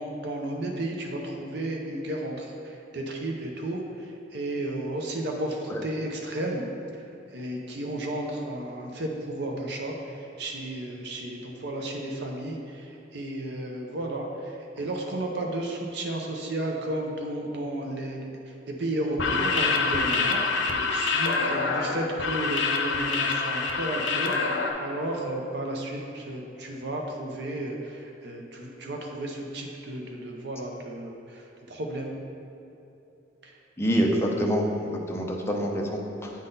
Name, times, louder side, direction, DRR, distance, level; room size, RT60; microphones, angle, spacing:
voice 1, 0.0-6.7 6.9-20.4 20.9-32.1 33.4-33.6, right 1 dB, 60° right, 1 dB, 0.6 m, -33 dB
sound 1, 19.1-24.7, left 4 dB, 90° left, 0.6 m, -26 dB
voice 2, 33.8-36.3, equal, 15° left, 0 dB, 0.6 m, -26 dB
8.7 x 3.8 x 3.9 m, 2.9 s
head